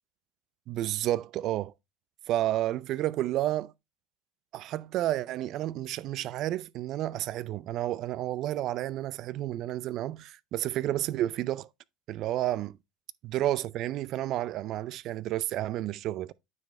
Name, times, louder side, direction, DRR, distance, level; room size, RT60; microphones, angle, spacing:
voice 1, 0.7-1.7 2.3-3.7 4.5-11.7 12.1-12.8 13.2-16.3, right 14 dB, 55° right, 0.4 m, -31 dB
9.3 x 5.1 x 3.1 m
supercardioid pair, 105°, 0 cm